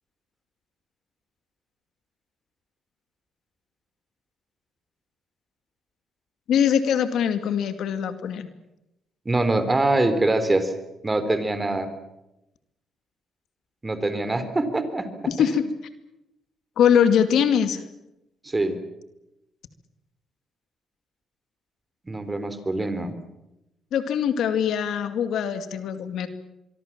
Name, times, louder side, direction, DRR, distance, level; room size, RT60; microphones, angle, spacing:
voice 1, 6.5-8.5 15.3-15.7 16.8-17.8 23.9-26.3, left 8 dB, 75° left, 10 dB, 2.3 m, -22 dB
voice 2, 9.3-10.7 11.0-11.9 13.8-15.5 18.4-18.8 22.1-23.1, right 2 dB, 20° right, 11 dB, 3.7 m, -24 dB
24.0 x 24.0 x 7.5 m, 0.90 s
cardioid pair, 90°, 0 cm